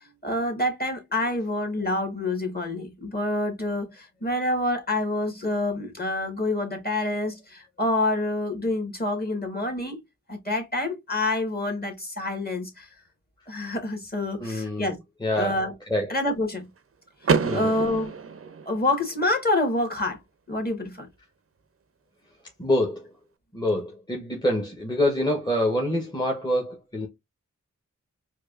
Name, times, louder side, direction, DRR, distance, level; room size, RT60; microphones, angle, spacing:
voice 1, 0.2-10.0 10.3-12.9 13.5-15.0 15.3-15.7 16.1-16.7 17.5-18.2 18.6-20.2 20.5-21.1, left 2 dB, 30° left, 1.5 m, -27 dB
voice 2, 14.4-14.9 15.2-15.6 15.9-16.1 17.4-17.7 22.6-23.1 23.5-27.1, left 1 dB, 15° left, 1.0 m, -26 dB
Car / Door, 17.2-19.2, right 5 dB, 45° right, 0.6 m, -27 dB
4.6 x 2.4 x 2.4 m
cardioid pair, 40°, 32 cm